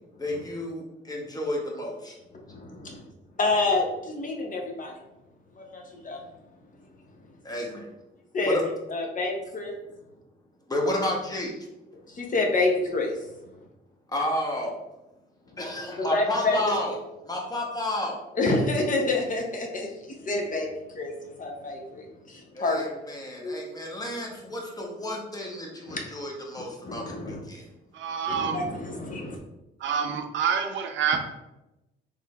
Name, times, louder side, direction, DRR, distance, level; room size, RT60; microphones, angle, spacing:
voice 1, 0.2-2.2 7.4-7.9 8.5-8.6 10.7-11.7 14.1-14.7 15.6-16.9 17.3-18.2 22.5-27.6, left 1 dB, 20° left, -1 dB, 0.9 m, -31 dB
voice 2, 2.3-3.1 3.4-5.0 5.6-6.3 6.8-6.9 7.2-7.3 8.3-8.6 8.9-9.7 12.1-13.6 16.0-16.8 18.3-23.1 23.4-23.6 25.9-26.0 26.8-27.4 28.3-29.4, left 2 dB, 40° left, 1 dB, 0.7 m, -28 dB
voice 3, 28.0-28.6 29.8-31.2, right 7 dB, 70° right, 6 dB, 0.5 m, -27 dB
3.7 x 3.2 x 2.3 m, 0.96 s
cardioid pair, 90°, 20 cm